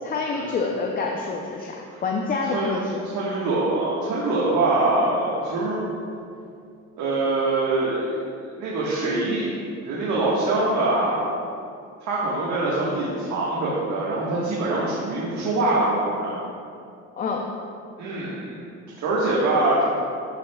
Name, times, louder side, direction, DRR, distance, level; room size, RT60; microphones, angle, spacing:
voice 1, 0.0-3.1 17.2-17.5, left 4 dB, 30° left, 1 dB, 0.5 m, -27 dB
voice 2, 3.1-5.8 7.0-8.2 8.4-9.5 9.8-11.2 12.0-16.3 18.0-18.6 19.0-19.8, right 2 dB, 80° right, -6 dB, 1.5 m, -24 dB
12.5 x 6.3 x 2.3 m, 2.4 s
cardioid pair, 140°, 29 cm